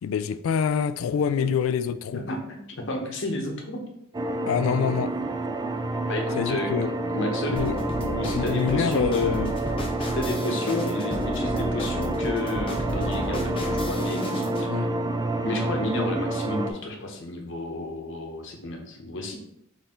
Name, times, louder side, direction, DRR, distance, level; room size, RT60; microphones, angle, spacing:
voice 1, 0.0-2.2 4.5-5.1 6.4-6.9 7.5-7.7 8.3-9.5 14.7-14.9, left 7 dB, 85° left, 0.3 m, -26 dB
voice 2, 2.1-3.8 6.1-6.7 7.1-9.5 10.0-14.9 15.4-19.3, left 1 dB, 65° left, 0.9 m, -32 dB
sound 1, 4.1-16.7, right 2 dB, 20° right, 0.3 m, -29 dB
sound 2, 7.6-14.7, left 1 dB, 25° left, 0.7 m, -32 dB
4.3 x 3.4 x 3.6 m
head